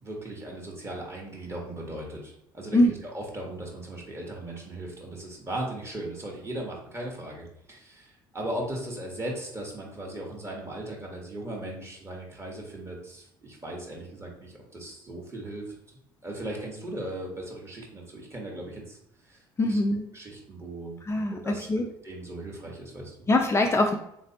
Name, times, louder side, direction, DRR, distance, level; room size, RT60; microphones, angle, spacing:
voice 1, 0.0-15.7 16.2-19.0 19.3-19.8 20.1-21.0 21.3-21.7 22.0-23.2, right 1 dB, 25° right, -1 dB, 1.4 m, -38 dB
voice 2, 19.6-20.1 21.0-21.9 23.3-24.0, left 1 dB, 25° left, 3 dB, 0.4 m, -23 dB
3.3 x 3.2 x 2.9 m, 0.78 s
supercardioid pair, 75°, 11 cm